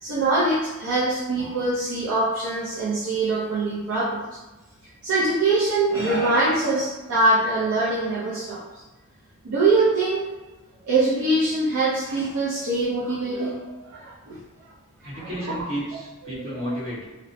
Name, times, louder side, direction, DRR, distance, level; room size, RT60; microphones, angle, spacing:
voice 1, 0.0-4.2 5.0-8.6 9.4-10.3 10.8-13.6 13.9-14.4 15.1-15.3, right 2 dB, 85° right, -8 dB, 0.6 m, -23 dB
voice 2, 15.0-17.1, equal, 65° right, -9 dB, 1.4 m, -32 dB
2.9 x 2.1 x 2.7 m, 1.1 s
head